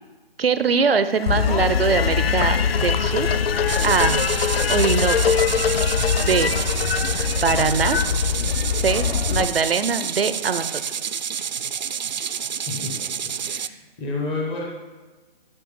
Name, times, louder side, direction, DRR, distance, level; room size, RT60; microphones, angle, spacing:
voice 1, 0.4-3.3 3.8-4.2 4.7-5.4 6.2-6.5 7.4-8.0 8.8-10.8, right 5 dB, 75° right, 12 dB, 0.8 m, -22 dB
sound 1, 1.1-9.2, left 6 dB, 80° left, 0.6 m, -26 dB
sound 2, 1.3-9.4, left 7 dB, 50° left, 0.8 m, -24 dB
sound 3, 3.7-13.7, right 8 dB, 50° right, 0.5 m, -29 dB
voice 2, 13.4-14.6, left 3 dB, 5° left, -2 dB, 0.5 m, -29 dB
10.0 x 5.7 x 7.0 m, 1.3 s
figure-of-eight pair, 145°, 29 cm